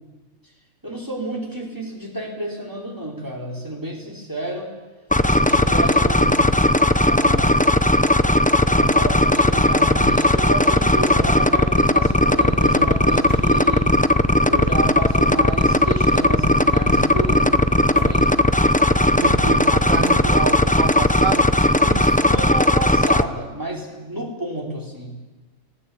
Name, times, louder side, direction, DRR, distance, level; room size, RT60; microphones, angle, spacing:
voice 1, 0.8-4.8 5.3-6.5 7.0-7.7 8.7-13.9 14.5-18.4 22.0-25.2, right 1 dB, 15° right, -1 dB, 4.3 m, -30 dB
sound 1, 5.1-23.2, left 1 dB, 10° left, 0.5 m, -17 dB
sound 2, 12.0-21.2, right 1 dB, 35° right, 3.0 m, -39 dB
voice 2, 19.0-22.2, right 6 dB, 80° right, 9 dB, 1.8 m, -28 dB
23.5 x 18.5 x 8.7 m, 1.3 s
omnidirectional pair, 1.4 m